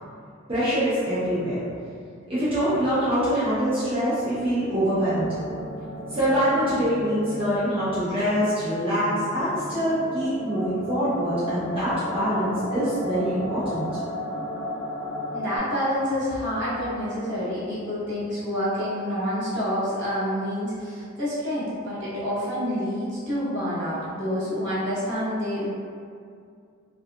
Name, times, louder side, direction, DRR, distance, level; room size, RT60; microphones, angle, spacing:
voice 1, 0.5-1.6 2.3-5.3 6.1-13.8, equal, 30° right, -13 dB, 0.6 m, -24 dB
sound 1, 5.2-15.6, equal, 40° left, 1.4 m, -35 dB
voice 2, 15.3-25.7, equal, 60° right, -11 dB, 1.3 m, -28 dB
2.7 x 2.3 x 2.3 m, 2.3 s
head